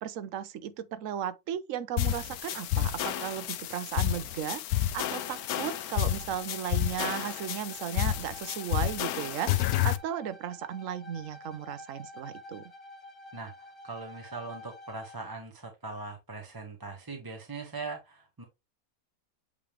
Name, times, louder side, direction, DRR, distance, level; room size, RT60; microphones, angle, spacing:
voice 1, 0.0-12.7, right 10 dB, 65° right, 1.0 m, -36 dB
sound 1, 2.0-10.0, left 13 dB, 75° left, 1.1 m, -30 dB
Bowed string instrument, 4.8-15.3, left 1 dB, 20° left, 1.5 m, -50 dB
voice 2, 13.3-18.4, right 3 dB, 15° right, 0.9 m, -41 dB
8.4 x 3.4 x 3.3 m
omnidirectional pair, 1.6 m